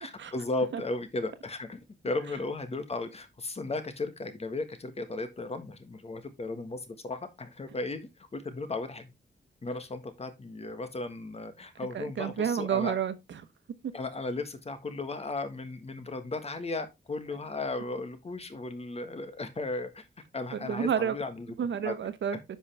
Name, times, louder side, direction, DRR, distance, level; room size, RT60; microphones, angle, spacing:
voice 1, 0.0-9.1 9.6-13.0 13.9-20.0 20.3-21.5 21.8-21.9, left 2 dB, 35° left, 1.5 m, -35 dB
voice 2, 11.8-13.4 13.8-13.9 20.5-21.2 21.6-22.6, right 8 dB, 90° right, 1.0 m, -30 dB
10.5 x 5.5 x 3.4 m
wide cardioid pair, 135°, 19 cm